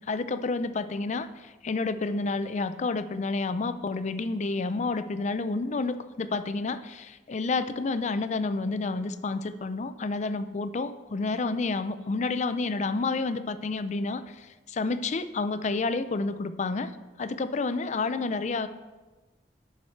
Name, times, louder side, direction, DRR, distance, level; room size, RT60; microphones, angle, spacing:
voice 1, 0.1-16.9 17.2-18.7, left 3 dB, 40° left, 12 dB, 0.4 m, -30 dB
10.5 x 4.7 x 5.8 m, 1.2 s
head